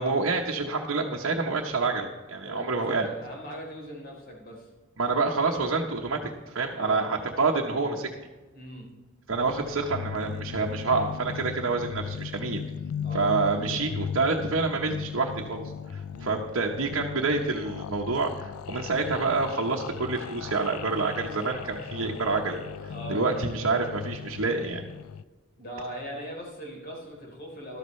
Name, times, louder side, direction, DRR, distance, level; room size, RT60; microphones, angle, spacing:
voice 1, 0.0-3.1 5.0-8.1 9.3-12.6 13.1-15.6 15.9-24.8, right 3 dB, 65° right, -1 dB, 1.1 m, -27 dB
voice 2, 2.5-4.7 6.8-7.1 8.5-8.9 13.0-13.3 16.1-16.4 22.9-23.2 25.6-27.8, equal, 45° left, -1 dB, 3.6 m, -39 dB
sound 1, 9.3-25.2, left 7 dB, 85° left, 0.4 m, -37 dB
13.5 x 12.5 x 3.2 m, 1.2 s
head